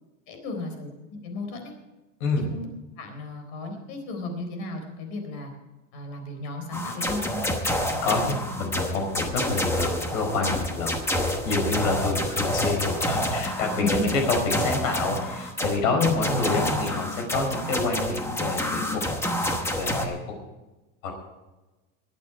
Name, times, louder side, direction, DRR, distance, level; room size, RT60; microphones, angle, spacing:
voice 1, 0.3-1.7 2.5-2.7 3.0-5.5 5.9-7.4 13.8-14.1, left 2 dB, 50° left, 5 dB, 4.0 m, -33 dB
voice 2, 2.2-2.5 8.0-11.0 11.4-19.0 19.7-20.3 21.0-21.1, left 3 dB, 85° left, 4 dB, 5.1 m, -27 dB
sound 1, 6.7-20.1, left 1 dB, 5° left, 1.0 m, -28 dB
21.5 x 9.4 x 4.7 m, 1.1 s
supercardioid pair, 175°, 39 cm